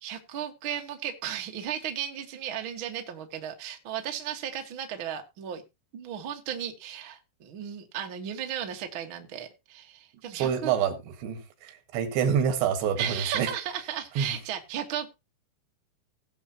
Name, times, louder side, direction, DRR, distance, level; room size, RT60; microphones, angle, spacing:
voice 1, 0.0-5.6 5.9-10.7 13.0-15.1, right 9 dB, 60° right, 1.3 m, -35 dB
voice 2, 10.3-13.5 14.2-14.4, right 8 dB, 90° right, 3.9 m, -27 dB
18.5 x 7.3 x 2.9 m
omnidirectional pair, 4.9 m